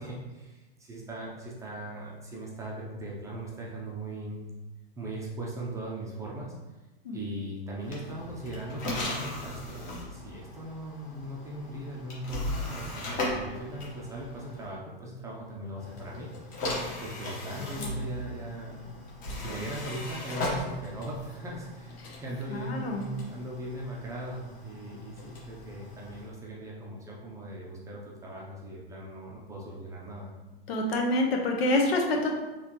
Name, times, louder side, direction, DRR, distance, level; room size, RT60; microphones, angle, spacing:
voice 1, 0.0-4.4 5.0-6.6 7.1-16.4 17.0-18.9 19.4-30.3, right 1 dB, 10° right, -4 dB, 0.5 m, -39 dB
sound 1, 7.8-14.7 15.8-26.3, left 1 dB, 30° left, 1.1 m, -38 dB
voice 2, 22.5-23.0 30.7-32.3, left 1 dB, 80° left, 1 dB, 1.0 m, -27 dB
4.1 x 3.1 x 2.9 m, 1.1 s
hypercardioid pair, 140°, 30 cm